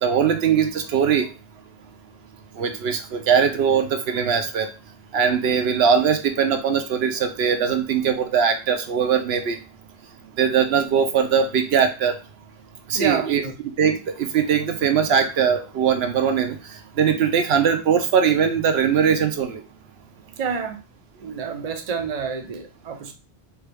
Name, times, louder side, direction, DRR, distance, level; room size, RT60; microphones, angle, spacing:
voice 1, 0.0-1.3 2.6-4.7 5.1-9.6 10.4-12.1 12.9-13.4 13.8-16.6 17.0-19.6, right 7 dB, 80° right, 5 dB, 0.8 m, -20 dB
voice 2, 12.9-13.5 20.4-20.8 21.2-23.1, right 6 dB, 45° right, 5 dB, 0.6 m, -28 dB
4.5 x 2.3 x 3.3 m, 0.31 s
omnidirectional pair, 1.1 m